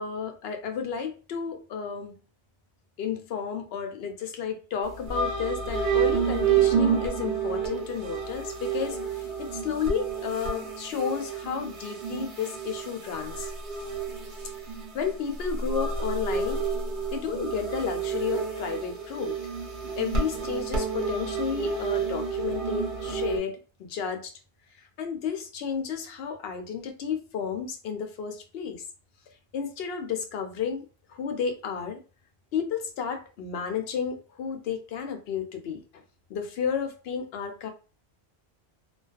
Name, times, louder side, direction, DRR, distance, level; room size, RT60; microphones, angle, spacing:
voice 1, 0.0-2.2 3.0-13.8 14.9-16.6 17.1-19.4 20.0-24.3 25.0-28.8 29.5-32.0 32.5-36.0 36.3-37.7, left 7 dB, 75° left, 6 dB, 0.8 m, -32 dB
sound 1, 4.8-23.4, right 6 dB, 55° right, 0.9 m, -29 dB
2.4 x 2.3 x 2.3 m, 0.34 s
omnidirectional pair, 1.0 m